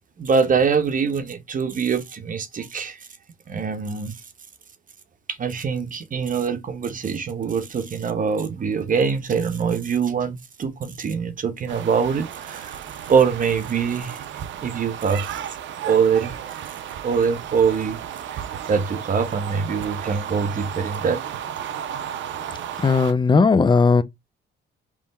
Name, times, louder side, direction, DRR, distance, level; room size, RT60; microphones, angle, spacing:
voice 1, 0.2-3.1 3.5-4.1 5.3-12.8 13.1-14.2 14.6-15.5 15.8-16.4 17.0-18.0 18.3-21.2, right 6 dB, 40° right, 0.8 m, -23 dB
sound 1, 11.7-23.1, right 9 dB, 75° right, 0.6 m, -34 dB
voice 2, 22.8-24.0, left 4 dB, 25° left, 0.4 m, -17 dB
3.6 x 3.1 x 4.1 m
cardioid pair, 90°, 20 cm